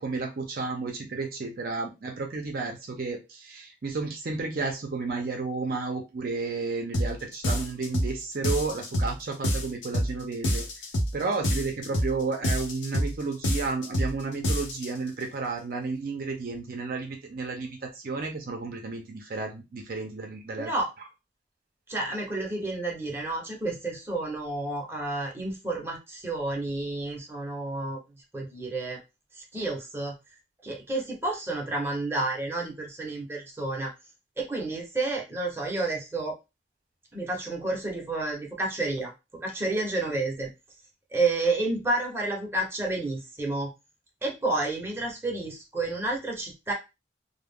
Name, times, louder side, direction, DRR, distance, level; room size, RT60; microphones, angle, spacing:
voice 1, 0.0-10.6 11.1-20.7, right 4 dB, 50° right, 2 dB, 0.5 m, -32 dB
sound 1, 6.9-7.1 7.4-8.1 8.4-9.1 9.4-10.1 10.4-11.1 11.4-12.1 12.4-13.1 13.4-14.1 14.4-14.9, equal, 85° left, 0.7 m, -26 dB
voice 2, 20.6-20.9 21.9-28.0 28.3-29.0 29.4-30.1 30.6-33.9 34.4-36.3 37.1-39.1 39.4-40.5 41.1-43.7 44.2-46.7, right 2 dB, 15° right, -1 dB, 0.7 m, -30 dB
2.3 x 2.0 x 3.4 m, 0.25 s
head